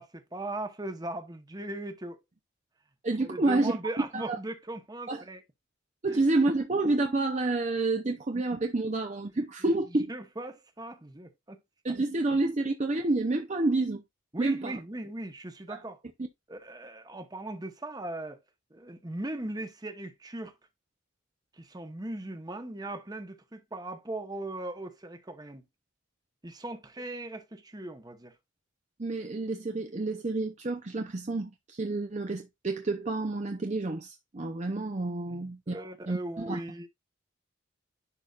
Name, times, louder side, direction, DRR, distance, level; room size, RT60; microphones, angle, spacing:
voice 1, 0.0-2.2 3.2-5.4 6.1-6.2 9.6-11.6 14.3-16.0 16.5-18.4 18.7-20.5 21.5-25.7 26.4-28.3 35.3-36.9, right 1 dB, 20° right, 1.0 m, -39 dB
voice 2, 3.0-3.8 4.1-4.4 5.1-5.2 6.0-10.1 11.8-14.0 14.4-14.8 15.7-15.8 29.0-36.6, right 2 dB, 35° right, 0.6 m, -29 dB
11.0 x 4.0 x 2.4 m
head